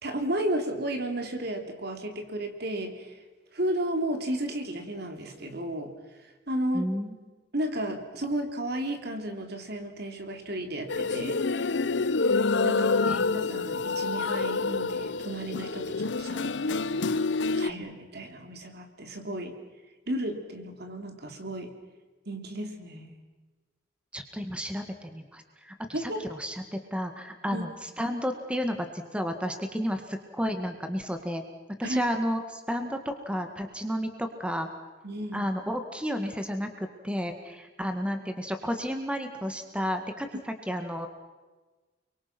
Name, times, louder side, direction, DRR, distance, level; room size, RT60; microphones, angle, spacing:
voice 1, 0.0-3.2 3.5-5.9 6.5-6.9 7.5-11.7 12.6-16.9 17.5-19.5 20.1-21.7 22.3-23.2 25.9-26.2 27.5-27.6 31.8-32.0 35.0-35.5, right 1 dB, 60° right, 5 dB, 3.3 m, -33 dB
voice 2, 6.7-7.3 13.1-13.2 24.1-31.4 31.8-34.7 35.3-41.1, equal, 5° right, 6 dB, 1.9 m, -32 dB
sound 1, 10.9-17.7, left 4 dB, 70° left, 0.7 m, -27 dB
30.0 x 23.5 x 6.1 m, 1.3 s
head